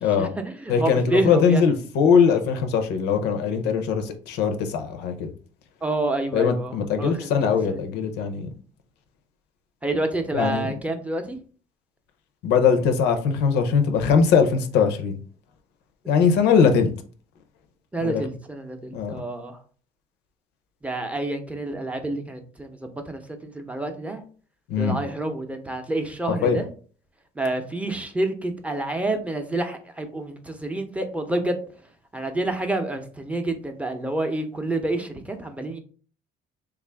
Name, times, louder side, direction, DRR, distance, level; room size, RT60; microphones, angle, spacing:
voice 1, 0.2-1.6 5.8-7.3 7.7-7.8 9.8-11.4 17.9-19.6 20.8-24.2 24.8-26.7 27.4-31.6 32.1-35.8, right 2 dB, 10° right, 0.5 m, -28 dB
voice 2, 0.7-5.3 6.3-8.5 10.3-10.7 12.4-15.2 16.1-16.9 18.0-18.2 18.9-19.2 24.7-25.0 26.3-26.6, left 6 dB, 85° left, 0.6 m, -21 dB
3.4 x 2.4 x 3.3 m
cardioid pair, 110°, 17 cm